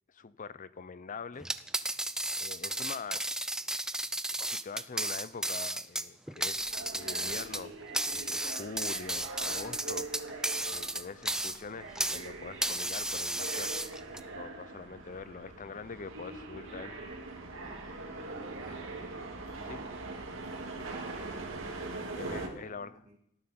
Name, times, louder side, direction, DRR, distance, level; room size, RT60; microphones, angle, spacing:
voice 1, 0.1-1.5 2.4-3.2 4.4-7.8 8.1-10.1 10.7-13.8 14.3-17.0 19.7-19.8 22.1-23.0, left 5 dB, 40° left, 16 dB, 0.6 m, -44 dB
sound 1, 1.4-12.3 12.6-14.2, right 1 dB, 5° right, 0.5 m, -34 dB
sound 2, 6.5-22.5, right 3 dB, 65° right, 2.3 m, -42 dB
voice 2, 18.1-18.9 20.7-21.4 22.4-23.2, right 2 dB, 35° right, -4 dB, 2.2 m, -52 dB
18.5 x 13.5 x 4.3 m, 0.79 s
head